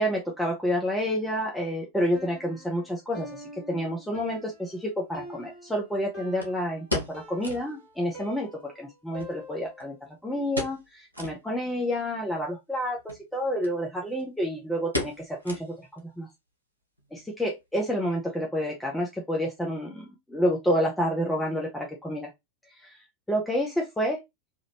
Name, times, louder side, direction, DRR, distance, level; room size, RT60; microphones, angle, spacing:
voice 1, 0.0-10.0 10.2-16.3 17.1-22.3 22.8-22.9 23.3-24.2, equal, 5° left, 0.8 m, -29 dB
Piano, 2.1-10.0, left 1 dB, 30° left, 1.7 m, -46 dB
sound 1, 4.3-4.4 6.4-7.7 8.1-8.2 8.4-8.5 9.2-10.0 10.5-10.9 11.1-11.4 11.9-12.0 13.0-13.2 13.6-13.7 14.0-14.4 14.9-16.0 16.3-16.4 17.0-17.3 17.6-17.7, left 2 dB, 85° left, 1.1 m, -35 dB
3.5 x 2.5 x 2.8 m
figure-of-eight pair, 90°, 0 cm